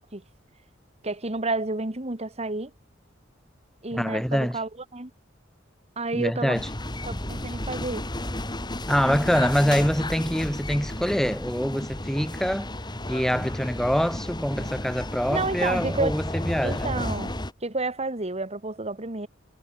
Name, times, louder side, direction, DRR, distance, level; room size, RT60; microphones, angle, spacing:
voice 1, 1.0-2.7 3.8-5.1 6.0-6.6 7.1-8.1 15.3-16.1 16.6-17.3 17.6-19.3, right 2 dB, 35° right, 2.3 m, -30 dB
voice 2, 3.9-4.6 6.1-6.7 8.9-12.7 13.1-16.9, equal, ahead, 3.5 m, -25 dB
sound 1, 6.5-17.5, left 1 dB, 20° left, 3.3 m, -32 dB
head